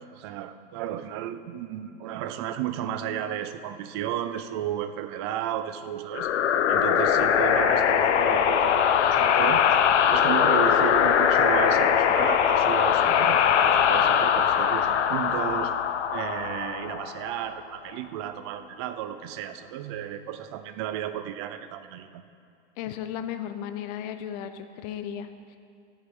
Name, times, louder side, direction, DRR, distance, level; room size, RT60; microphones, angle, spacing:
voice 1, 0.0-6.3 6.7-9.6 10.1-15.8 16.1-22.2, right 11 dB, 25° right, 10 dB, 0.3 m, -33 dB
sound 1, 6.1-17.5, left 8 dB, 85° left, 0.9 m, -21 dB
voice 2, 22.8-25.6, left 9 dB, 35° left, 9 dB, 0.7 m, -35 dB
16.5 x 10.0 x 3.7 m, 2.4 s
supercardioid pair, 160°, 34 cm